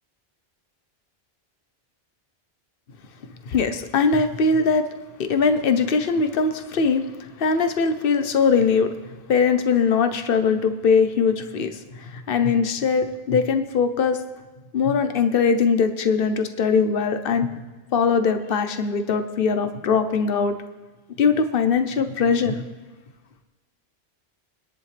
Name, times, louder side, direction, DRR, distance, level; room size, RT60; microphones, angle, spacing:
voice 1, 3.5-4.8 5.2-7.0 7.4-8.9 9.3-11.7 12.1-14.2 14.7-17.5 17.9-20.5 21.2-22.6, left 5 dB, 60° left, 8 dB, 1.1 m, -21 dB
24.0 x 10.5 x 3.4 m, 1.3 s
omnidirectional pair, 1.1 m